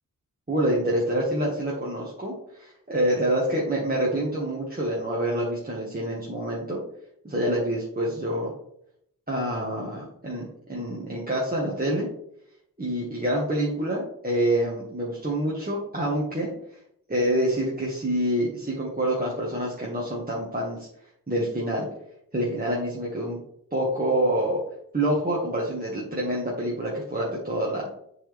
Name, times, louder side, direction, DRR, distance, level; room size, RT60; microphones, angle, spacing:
voice 1, 0.5-6.8 7.2-8.5 9.3-12.1 12.8-16.5 17.1-20.9 21.3-21.9 22.3-23.4 23.7-24.6 24.9-27.9, right 1 dB, 25° right, -5 dB, 1.8 m, -27 dB
7.5 x 4.7 x 3.5 m, 0.73 s
cardioid pair, 40°, 35 cm